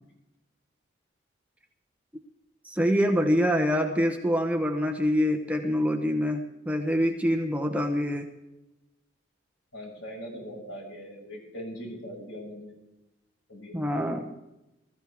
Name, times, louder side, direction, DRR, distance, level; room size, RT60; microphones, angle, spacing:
voice 1, 2.6-8.3 13.7-14.3, equal, 5° right, 3 dB, 0.9 m, -25 dB
voice 2, 9.7-12.8 13.5-13.9, equal, 80° left, -2 dB, 6.1 m, -41 dB
20.0 x 14.0 x 3.6 m, 0.95 s
head